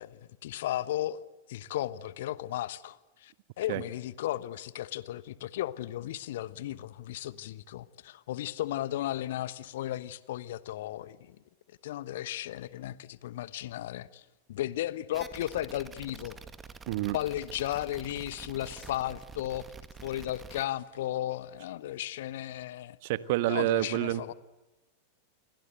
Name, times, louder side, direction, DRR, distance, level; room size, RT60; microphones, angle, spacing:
voice 1, 0.0-11.4 11.8-16.4 17.1-19.7 20.0-23.0 23.5-24.3, left 13 dB, 55° left, 18 dB, 1.1 m, -35 dB
sound 1, 15.1-20.6, right 5 dB, 15° right, 1.9 m, -47 dB
voice 2, 16.9-17.2 23.0-24.2, right 16 dB, 50° right, 15 dB, 1.3 m, -28 dB
29.0 x 24.0 x 8.1 m, 1.1 s
figure-of-eight pair, 90°, 0 cm